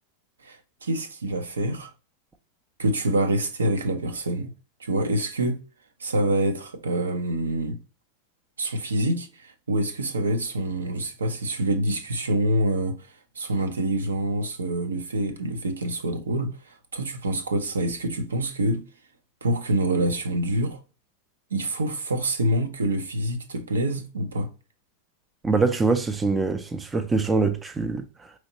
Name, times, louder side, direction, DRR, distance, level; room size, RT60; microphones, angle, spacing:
voice 1, 0.4-1.9 2.8-4.5 4.8-5.6 6.0-7.8 8.6-13.0 13.4-18.8 19.4-20.8 21.5-24.5, right 1 dB, 70° right, 0.6 m, -26 dB
voice 2, 25.4-28.3, right 3 dB, 15° right, 0.5 m, -24 dB
5.0 x 3.0 x 2.8 m
figure-of-eight pair, 90°, 0 cm